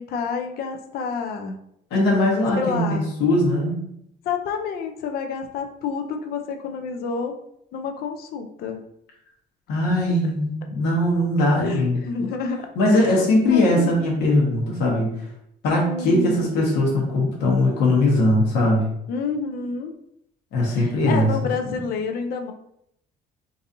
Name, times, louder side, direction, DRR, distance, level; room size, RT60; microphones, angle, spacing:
voice 1, 0.0-1.6 2.5-3.1 4.2-7.3 7.7-8.8 11.6-12.6 12.9-14.1 15.7-16.4 19.1-19.9 20.7-22.5, left 5 dB, 65° left, 5 dB, 0.5 m, -29 dB
voice 2, 1.9-3.8 9.7-12.0 12.8-15.1 15.6-18.9 20.5-21.3, left 1 dB, 85° left, -3 dB, 1.1 m, -20 dB
3.9 x 2.6 x 2.6 m, 0.75 s
cardioid pair, 110°, 17 cm